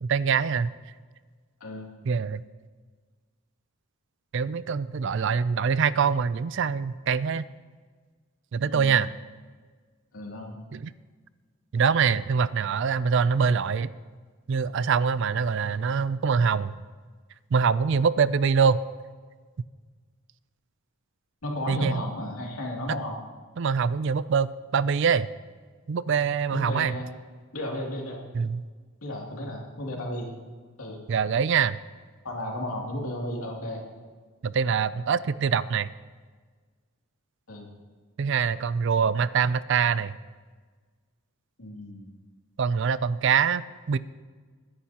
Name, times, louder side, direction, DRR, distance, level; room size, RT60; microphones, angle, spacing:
voice 1, 0.0-0.7 2.1-2.4 4.3-7.5 8.5-9.1 10.7-10.9 11.7-13.9 14.5-16.8 17.5-18.8 21.7-22.0 23.6-25.3 25.9-27.0 28.3-28.6 31.1-31.8 34.4-35.9 38.2-40.1 42.6-44.0, right 6 dB, 55° right, 17 dB, 0.4 m, -24 dB
voice 2, 8.6-9.0 10.1-10.6 21.4-23.2 26.5-27.1 27.5-28.2 29.0-30.3 30.8-31.0 32.2-33.8 37.5-37.7 41.6-42.1, left 1 dB, 75° left, -1 dB, 2.6 m, -34 dB
21.0 x 10.5 x 2.9 m, 1.5 s
head